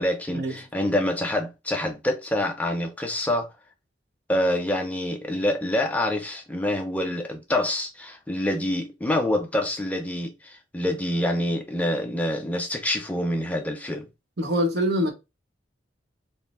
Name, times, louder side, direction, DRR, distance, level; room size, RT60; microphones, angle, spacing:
voice 1, 0.0-3.5 4.3-14.1, left 1 dB, 10° left, 0.4 m, -26 dB
voice 2, 14.4-15.1, equal, 60° right, 0.9 m, -24 dB
4.1 x 2.0 x 3.5 m
head